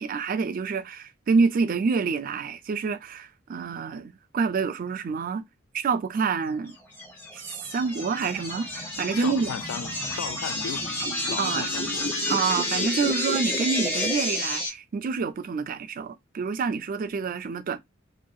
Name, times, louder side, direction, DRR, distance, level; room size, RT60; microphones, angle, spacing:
voice 1, 0.0-5.4 5.7-6.8 7.3-9.5 11.4-11.7 12.3-17.8, right 5 dB, 45° right, 0.3 m, -27 dB
sound 1, 7.0-14.7, left 1 dB, 10° left, 0.7 m, -30 dB
voice 2, 9.2-11.0 11.3-12.1, left 7 dB, 85° left, 0.4 m, -36 dB
2.6 x 2.1 x 2.3 m
head